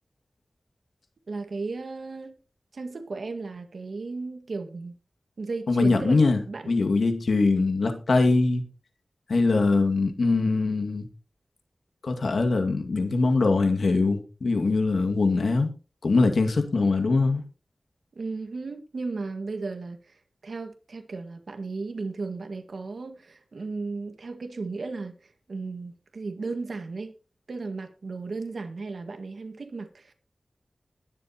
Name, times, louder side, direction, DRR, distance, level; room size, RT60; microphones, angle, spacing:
voice 1, 1.3-2.3 2.7-5.0 5.4-6.2 6.5-6.9 18.1-20.0 20.4-25.2 25.5-27.1 27.5-30.1, right 3 dB, 80° right, 1.7 m, -35 dB
voice 2, 5.7-8.6 9.3-11.1 12.0-15.7 16.0-17.4, left 3 dB, 80° left, 2.1 m, -22 dB
20.0 x 7.8 x 3.0 m
wide cardioid pair, 60°, 0 cm